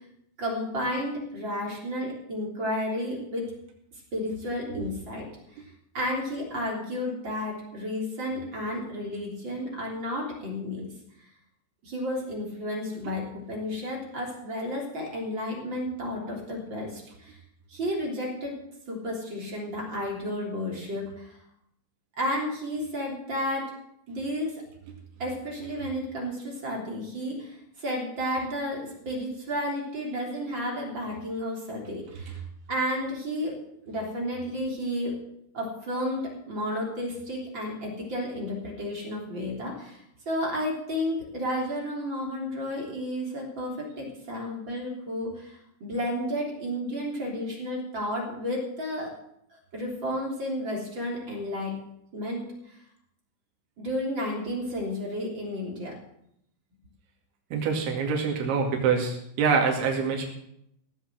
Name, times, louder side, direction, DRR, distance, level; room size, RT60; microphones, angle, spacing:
voice 1, 0.4-3.5 4.1-5.3 5.9-10.8 11.8-17.4 17.7-18.6 18.9-21.4 22.2-23.7 24.1-24.6 25.2-32.4 32.7-33.6 33.9-35.1 35.5-49.1 49.5-51.8 52.1-52.8 53.8-55.9, left 1 dB, 30° right, -2 dB, 3.6 m, -32 dB
voice 2, 57.5-60.2, right 5 dB, 85° right, 1 dB, 4.7 m, -25 dB
17.5 x 7.9 x 7.8 m, 0.74 s
omnidirectional pair, 5.2 m